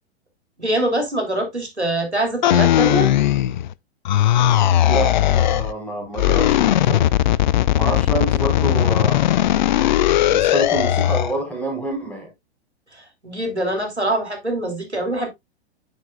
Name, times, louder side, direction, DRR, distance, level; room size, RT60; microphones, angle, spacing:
voice 1, 0.6-3.1 13.2-15.3, right 1 dB, 90° right, 2.9 m, -23 dB
sound 1, 2.4-3.7 4.1-5.7 6.1-11.3, left 12 dB, 45° left, 0.4 m, -18 dB
voice 2, 4.9-7.1 7.8-9.6 10.3-12.3, right 1 dB, 5° left, 4.2 m, -27 dB
9.4 x 6.7 x 2.2 m
figure-of-eight pair, 105°, 32 cm